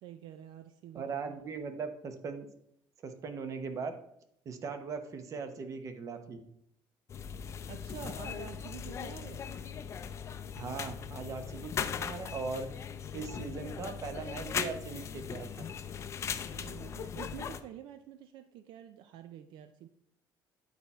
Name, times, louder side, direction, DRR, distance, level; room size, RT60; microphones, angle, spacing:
voice 1, 0.0-1.4 7.6-9.5 16.5-19.9, right 10 dB, 70° right, 9 dB, 0.4 m, -48 dB
voice 2, 0.9-2.5 3.0-3.9 4.4-6.4 10.5-12.7 13.1-15.7, right 5 dB, 40° right, 8 dB, 0.9 m, -39 dB
sound 1, 7.1-17.6, left 7 dB, 35° left, 0.5 m, -39 dB
9.4 x 4.2 x 4.4 m, 0.73 s
cardioid pair, 145°, 8 cm